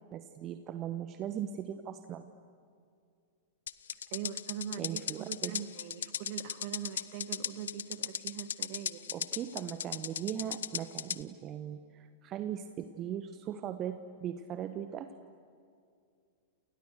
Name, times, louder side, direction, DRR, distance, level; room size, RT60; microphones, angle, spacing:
voice 1, 0.1-2.3 4.8-5.6 9.1-15.1, right 10 dB, 30° right, 9 dB, 1.3 m, -39 dB
sound 1, 3.7-11.2, left 9 dB, 65° left, 0.8 m, -37 dB
voice 2, 4.1-9.2, right 10 dB, 45° right, 12 dB, 1.8 m, -42 dB
29.5 x 29.5 x 6.8 m, 2.3 s
figure-of-eight pair, 95°, 0 cm